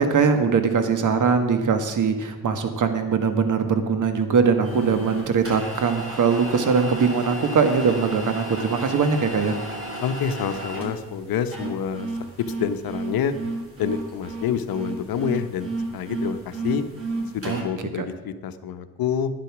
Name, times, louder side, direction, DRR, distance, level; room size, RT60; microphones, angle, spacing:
voice 1, 0.0-9.6 17.4-18.0, right 5 dB, 50° right, 8 dB, 1.7 m, -21 dB
sound 1, 4.6-17.6, right 2 dB, 35° right, 4.0 m, -33 dB
voice 2, 10.0-12.1 12.6-13.3 13.8-16.8 17.3-19.3, left 8 dB, 65° left, 10 dB, 1.0 m, -27 dB
12.0 x 9.7 x 6.1 m, 1.3 s
cardioid pair, 95°, 39 cm